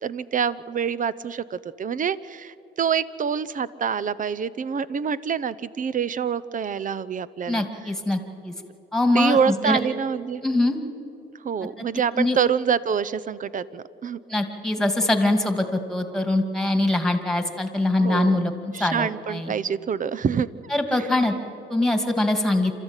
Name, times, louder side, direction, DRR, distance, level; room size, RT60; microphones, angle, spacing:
voice 1, 0.0-7.9 9.1-10.4 11.4-14.2 18.0-18.5 18.7-20.5 20.9-21.1, right 7 dB, 40° right, 17 dB, 0.7 m, -26 dB
voice 2, 7.5-8.5 8.9-9.8 10.4-10.8 12.2-12.4 14.3-18.5 18.8-19.5 20.7-21.3 21.7-22.7, left 2 dB, 5° left, 6 dB, 2.3 m, -23 dB
27.5 x 13.5 x 9.0 m, 2.8 s
cardioid pair, 90°, 20 cm